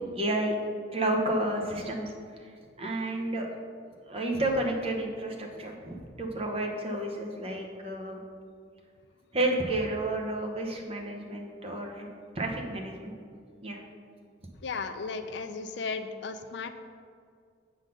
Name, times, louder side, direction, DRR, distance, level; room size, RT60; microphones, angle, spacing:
voice 1, 0.1-0.5 0.9-2.1 2.4-3.5 4.0-8.2 9.3-12.1 12.3-13.1 13.6-13.8, right 1 dB, 30° right, 1 dB, 0.9 m, -31 dB
voice 2, 14.6-16.7, left 4 dB, 65° left, 9 dB, 0.4 m, -35 dB
7.3 x 3.9 x 6.6 m, 2.2 s
head